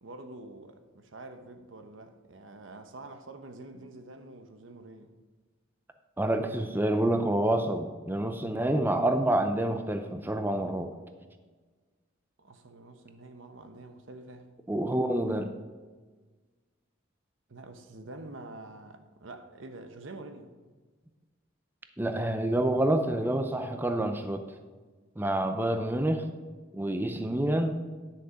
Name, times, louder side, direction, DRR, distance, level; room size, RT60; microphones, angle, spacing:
voice 1, 0.0-5.1 12.4-14.5 17.5-20.5, right 2 dB, 75° right, 1.0 m, -46 dB
voice 2, 6.2-10.9 14.7-15.5 22.0-24.4 25.2-26.3 26.7-27.8, right 1 dB, 10° right, 0.5 m, -27 dB
10.0 x 6.6 x 5.0 m
head